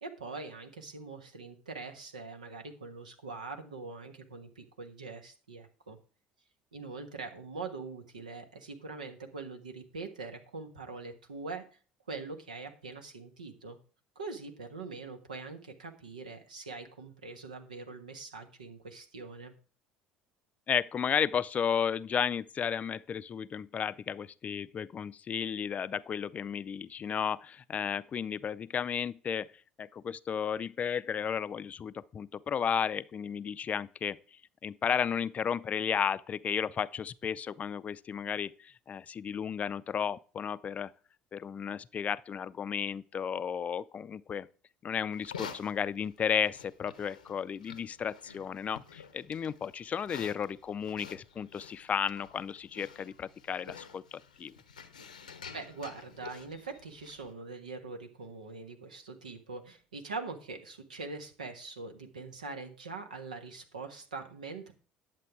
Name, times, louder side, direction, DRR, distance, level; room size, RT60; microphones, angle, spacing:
voice 1, 0.0-6.0 6.7-11.6 12.1-13.8 14.1-19.5 55.5-64.7, right 3 dB, 80° right, 1.3 m, -43 dB
voice 2, 20.7-29.5 29.8-40.9 41.3-44.5 44.8-54.5, left 7 dB, 35° left, 0.5 m, -33 dB
Livestock farm animals working animals, 45.1-57.3, left 6 dB, 85° left, 0.8 m, -50 dB
10.5 x 7.4 x 4.7 m
figure-of-eight pair, 60°, 4 cm